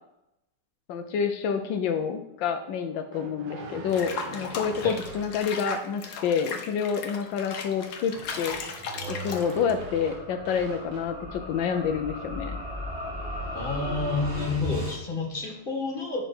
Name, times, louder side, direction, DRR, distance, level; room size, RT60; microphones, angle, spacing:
voice 1, 0.9-8.6 9.1-12.6, left 7 dB, 85° left, 7 dB, 1.4 m, -28 dB
sound 1, 3.1-5.4 8.0-11.2, right 3 dB, 80° right, 1.7 m, -41 dB
Water / Bathtub (filling or washing), 3.9-9.8, left 5 dB, 65° left, 1.3 m, -37 dB
sound 2, 7.7-15.0, equal, 30° right, 2.7 m, -37 dB
voice 2, 13.5-16.2, left 4 dB, 30° left, -1 dB, 1.9 m, -29 dB
10.0 x 4.8 x 4.4 m, 0.88 s
omnidirectional pair, 2.0 m